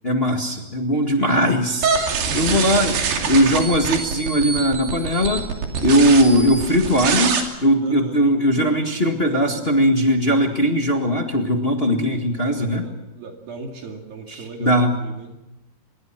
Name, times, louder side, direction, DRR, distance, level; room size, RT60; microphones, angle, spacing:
voice 1, 0.0-1.9 2.3-3.0 3.3-5.5 5.8-12.8 14.6-14.9, equal, 55° left, 3 dB, 0.6 m, -19 dB
sound 1, 1.8-7.4, right 5 dB, 85° right, 4.8 m, -24 dB
voice 2, 2.3-2.9 7.8-8.2 11.8-15.3, right 4 dB, 65° right, 2 dB, 4.1 m, -35 dB
25.5 x 22.5 x 6.0 m, 0.97 s
omnidirectional pair, 4.6 m